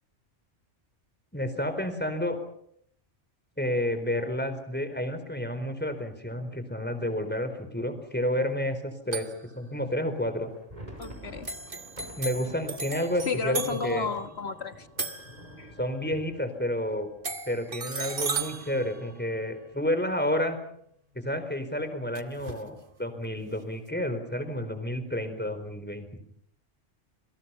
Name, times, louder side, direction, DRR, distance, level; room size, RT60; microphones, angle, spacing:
voice 1, 1.3-2.4 3.6-9.3 9.5-10.5 12.2-14.1 15.8-17.1 17.5-20.6 21.1-26.2, left 1 dB, 10° left, 4.2 m, -30 dB
sound 1, 9.1-9.5 11.0-11.2 11.4-15.9 17.2-19.8 22.2-22.7, right 4 dB, 45° right, 1.6 m, -36 dB
sound 2, 10.3-18.1 18.4-18.5 18.8-19.0 19.5-20.0, right 1 dB, 30° right, 6.2 m, -48 dB
voice 2, 11.0-11.5 13.3-14.9 15.6-15.7, left 4 dB, 60° left, 1.7 m, -32 dB
28.0 x 26.5 x 5.7 m
omnidirectional pair, 1.2 m